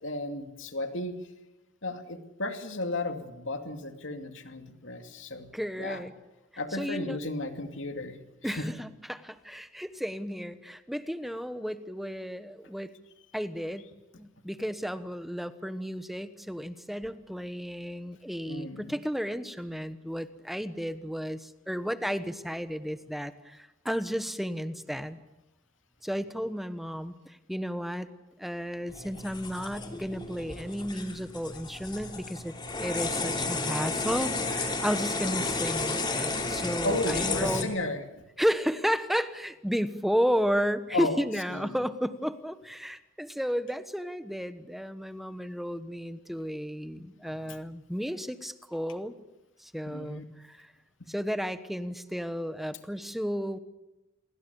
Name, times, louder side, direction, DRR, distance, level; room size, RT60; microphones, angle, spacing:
voice 1, 0.0-1.2 1.8-5.5 5.8-6.0 6.6-8.2 8.4-8.7 18.5-18.9 36.8-38.2 40.9-41.2 41.5-41.7 47.3-47.6 49.9-50.2 51.0-51.1, left 2 dB, 75° left, 6 dB, 2.5 m, -34 dB
voice 2, 5.5-6.1 6.7-7.2 8.4-12.9 13.3-13.9 14.2-25.2 26.0-28.1 28.4-37.7 38.4-49.1 49.6-50.7 51.1-53.6, equal, ahead, 11 dB, 1.2 m, -33 dB
sound 1, 28.9-37.6, left 3 dB, 25° left, 3.1 m, -32 dB
29.0 x 22.0 x 7.1 m, 0.98 s
head